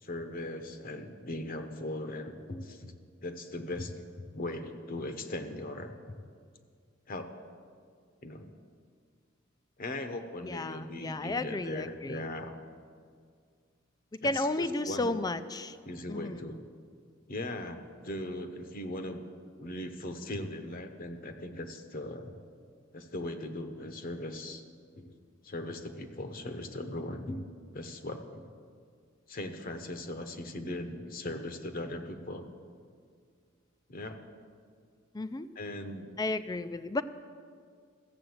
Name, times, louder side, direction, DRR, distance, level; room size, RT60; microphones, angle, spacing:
voice 1, 0.0-2.9 3.2-4.0 4.3-6.2 7.1-7.3 8.2-8.5 9.8-12.5 14.2-15.2 15.8-16.6 17.3-19.2 19.6-22.3 22.9-24.6 24.9-25.2 25.4-27.4 27.7-28.4 29.3-32.5 33.9-34.2 35.5-36.1, left 1 dB, 45° left, 7 dB, 0.9 m, -39 dB
voice 2, 10.4-12.2 14.2-15.8 16.1-16.4 35.1-35.5 36.2-37.0, left 2 dB, 20° left, 13 dB, 0.4 m, -33 dB
14.0 x 7.7 x 7.9 m, 2.1 s
head